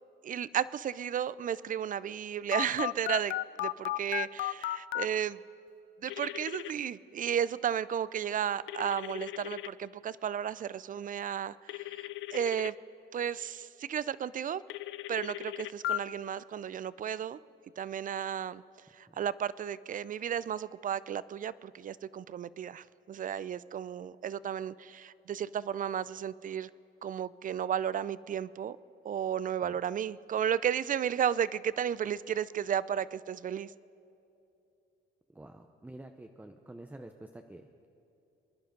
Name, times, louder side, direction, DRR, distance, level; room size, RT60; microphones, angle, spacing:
voice 1, 0.2-5.4 6.0-12.7 13.1-14.6 15.1-17.4 17.8-18.6 18.9-26.7 27.0-28.8 29.0-33.7, right 9 dB, 45° right, 19 dB, 0.4 m, -33 dB
Telephone, 2.5-5.1 6.1-6.7 8.7-9.7 11.7-12.7 14.7-16.0, left 15 dB, 75° left, 0.4 m, -35 dB
voice 2, 35.3-37.9, right 1 dB, 10° right, 5 dB, 0.7 m, -49 dB
24.0 x 10.5 x 5.2 m, 2.7 s
cardioid pair, 90°, 20 cm